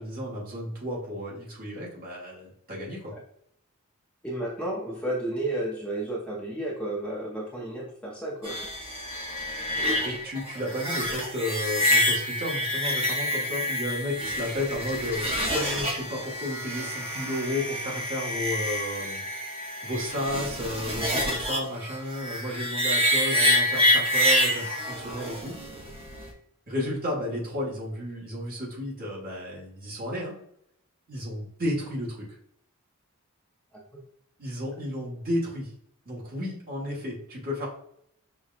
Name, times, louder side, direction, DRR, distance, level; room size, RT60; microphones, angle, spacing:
voice 1, 0.0-3.1 10.0-19.2 19.8-25.5 26.7-30.3 31.1-32.2 34.4-35.7 36.0-37.7, left 1 dB, 45° right, -5 dB, 1.3 m, -32 dB
voice 2, 4.2-8.7 23.3-23.5, right 1 dB, 5° left, -4 dB, 0.6 m, -32 dB
sound 1, 8.4-26.3, left 1 dB, 25° right, 0.8 m, -27 dB
5.7 x 2.3 x 2.4 m, 0.70 s
head